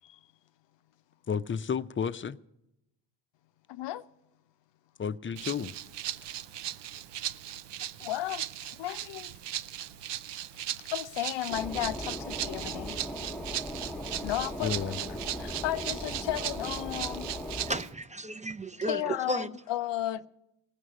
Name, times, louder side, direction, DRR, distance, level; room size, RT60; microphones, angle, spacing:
voice 1, 1.3-2.4 5.0-5.8 14.6-15.0, left 6 dB, 30° left, 0.5 m, -32 dB
voice 2, 3.7-4.0 8.0-9.3 10.8-13.0 14.2-17.3 18.9-20.3, left 13 dB, 80° left, 0.6 m, -34 dB
Rattle (instrument), 5.4-17.9, right 12 dB, 75° right, 0.6 m, -38 dB
sound 1, 11.5-17.8, left 1 dB, 5° left, 1.0 m, -38 dB
voice 3, 17.7-19.5, right 2 dB, 15° right, 0.6 m, -34 dB
18.0 x 6.4 x 9.8 m
cardioid pair, 60°, 43 cm